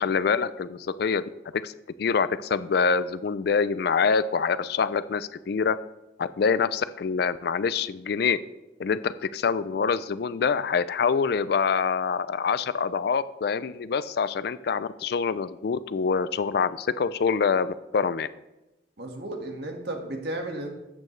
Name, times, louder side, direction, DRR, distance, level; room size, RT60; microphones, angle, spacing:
voice 1, 0.0-1.7 2.0-5.8 6.2-8.4 8.8-18.3, left 5 dB, 55° left, 15 dB, 0.4 m, -25 dB
voice 2, 19.0-20.7, right 1 dB, 60° right, 2 dB, 1.6 m, -33 dB
13.0 x 8.5 x 3.2 m, 0.98 s
head